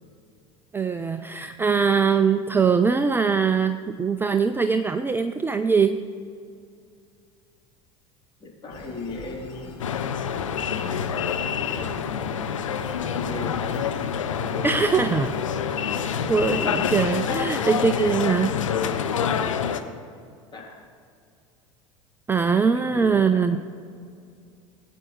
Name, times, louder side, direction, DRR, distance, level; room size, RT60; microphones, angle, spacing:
voice 1, 0.7-6.0 14.6-15.3 16.2-18.5 22.3-23.6, right 5 dB, 15° right, 9 dB, 0.4 m, -22 dB
voice 2, 8.4-9.8 11.1-12.5 13.1-13.7 14.3-15.0 17.3-17.5 20.5-20.9 22.5-23.6, left 2 dB, 30° left, -3 dB, 3.3 m, -39 dB
sound 1, 8.7-17.1, left 3 dB, 60° left, 1.9 m, -44 dB
sound 2, 9.8-19.8, left 7 dB, 75° left, 0.7 m, -27 dB
20.0 x 9.0 x 3.2 m, 2.3 s
figure-of-eight pair, 75°, 17 cm